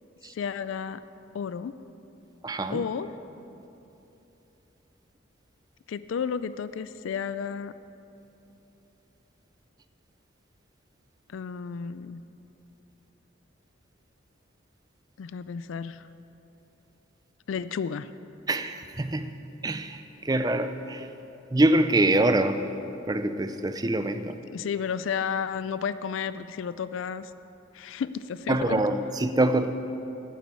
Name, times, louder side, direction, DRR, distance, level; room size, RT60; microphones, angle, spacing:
voice 1, 0.3-1.0 1.3-1.7 2.7-3.1 5.9-7.7 11.3-12.2 15.2-16.1 17.5-18.1 24.5-27.3 27.7-28.8, left 6 dB, 85° left, 14 dB, 0.4 m, -32 dB
voice 2, 2.4-2.8 18.5-19.4 19.6-21.1 21.5-22.6 23.1-24.4 28.5-29.8, right 1 dB, 20° right, 9 dB, 0.4 m, -25 dB
9.4 x 7.6 x 8.4 m, 3.0 s
head